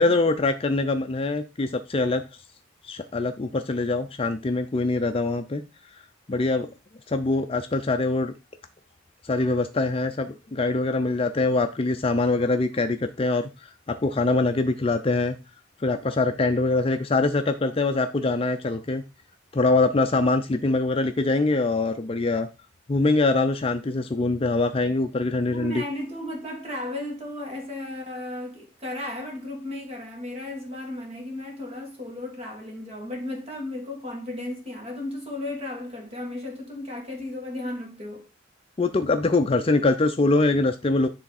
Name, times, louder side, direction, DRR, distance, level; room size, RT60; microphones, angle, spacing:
voice 1, 0.0-2.2 2.8-5.6 6.3-6.7 7.1-8.3 9.2-15.4 15.8-19.0 19.5-22.5 22.9-25.8 38.8-41.1, left 3 dB, 30° left, 0.5 m, -23 dB
voice 2, 25.5-38.3, left 1 dB, 30° right, 1.9 m, -35 dB
10.0 x 3.4 x 4.1 m
head